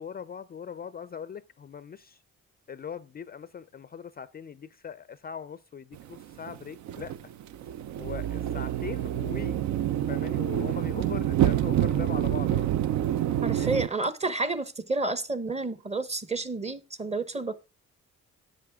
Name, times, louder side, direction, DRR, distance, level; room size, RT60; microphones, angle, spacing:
voice 1, 0.0-2.2 2.7-7.1 8.0-9.6 10.1-12.7 13.4-13.8, left 7 dB, 30° left, 0.4 m, -40 dB
sound 1, 5.9-13.9, right 12 dB, 70° right, 0.5 m, -27 dB
voice 2, 13.4-17.6, right 3 dB, 20° right, 0.9 m, -30 dB
10.0 x 7.8 x 3.5 m
cardioid pair, 90°, 30 cm